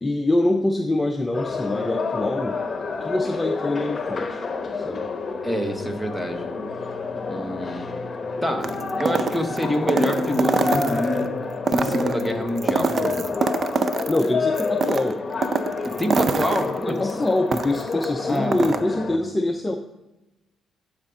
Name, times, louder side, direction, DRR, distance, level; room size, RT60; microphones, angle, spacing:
voice 1, 0.0-2.6 3.0-4.4 4.7-5.1 14.1-15.2 16.8-19.8, left 2 dB, 15° left, 4 dB, 0.6 m, -24 dB
sound 1, 1.3-19.2, left 4 dB, 35° left, 1.0 m, -29 dB
sound 2, 5.2-12.9, left 2 dB, 85° right, 1.6 m, -45 dB
voice 2, 5.4-6.5 7.3-7.9 8.4-8.7 9.0-11.3 11.7-13.4 15.8-17.0 18.2-19.0, equal, ahead, 5 dB, 1.2 m, -27 dB
sound 3, 8.6-11.2 11.6-14.3 14.6-18.1 18.4-18.8, right 4 dB, 45° right, 0.5 m, -25 dB
11.5 x 5.1 x 3.8 m, 1.0 s
cardioid pair, 90°, 0 cm